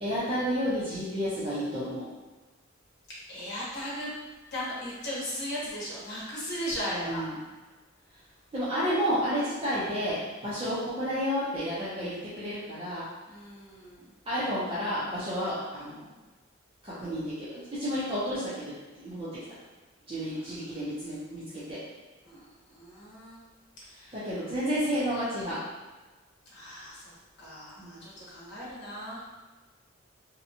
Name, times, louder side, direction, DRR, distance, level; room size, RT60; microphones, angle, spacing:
voice 1, 0.0-2.1 6.9-7.3 8.5-13.0 14.3-16.1 16.8-18.7 19.0-19.3 20.1-21.4 21.7-21.8 24.1-25.6 27.8-28.0, equal, 30° right, -11 dB, 0.6 m, -31 dB
voice 2, 3.3-4.1 4.5-7.2 13.3-14.0 20.3-20.9 22.2-22.5 22.7-23.4 23.9-24.2 26.5-29.2, equal, 55° left, -7 dB, 1.0 m, -37 dB
2.8 x 2.2 x 2.7 m, 1.2 s
head